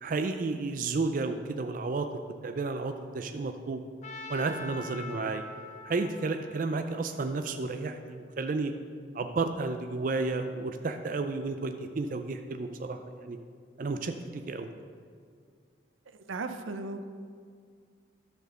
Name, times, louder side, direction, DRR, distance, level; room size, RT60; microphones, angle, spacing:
voice 1, 0.0-2.1 2.4-3.8 4.3-5.4 5.9-8.7 9.1-13.4 13.8-14.7, right 3 dB, 45° right, 7 dB, 0.4 m, -32 dB
Trumpet, 4.0-8.1, left 2 dB, 35° left, 0.7 m, -44 dB
voice 2, 16.2-17.0, right 3 dB, 90° right, 8 dB, 0.6 m, -36 dB
11.0 x 4.5 x 6.5 m, 2.1 s
head